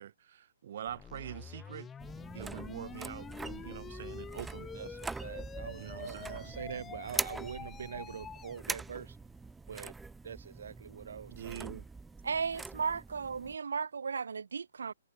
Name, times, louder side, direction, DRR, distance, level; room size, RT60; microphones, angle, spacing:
voice 1, 0.0-1.9 2.3-4.7 5.8-6.5 11.3-11.8, right 10 dB, 55° right, 1.6 m, -44 dB
sound 1, 0.9-8.6, left 7 dB, 10° left, 2.1 m, -47 dB
sound 2, 2.0-13.5, right 3 dB, 5° right, 1.1 m, -43 dB
voice 2, 4.7-9.2 9.7-9.9 10.2-11.6, right 7 dB, 70° right, 1.0 m, -44 dB
voice 3, 12.2-14.9, right 5 dB, 85° right, 0.5 m, -35 dB
hypercardioid pair, 155°, 0 cm